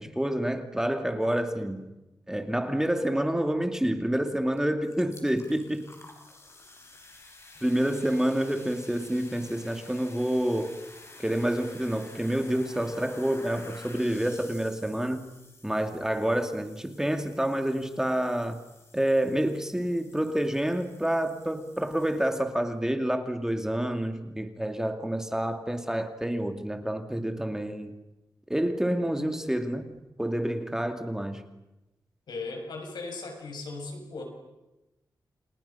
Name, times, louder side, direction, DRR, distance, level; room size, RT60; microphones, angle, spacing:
voice 1, 0.0-1.9 2.3-5.9 7.6-10.8 11.2-15.3 15.6-18.6 18.9-27.9 28.5-31.4, right 1 dB, 5° right, 6 dB, 2.6 m, -28 dB
sound 1, 4.5-4.6 4.9-22.6, left 2 dB, 40° left, 6.5 m, -51 dB
voice 2, 32.3-34.2, left 3 dB, 85° left, 3 dB, 7.1 m, -37 dB
29.5 x 29.0 x 5.9 m, 1.0 s
wide cardioid pair, 85°, 7 cm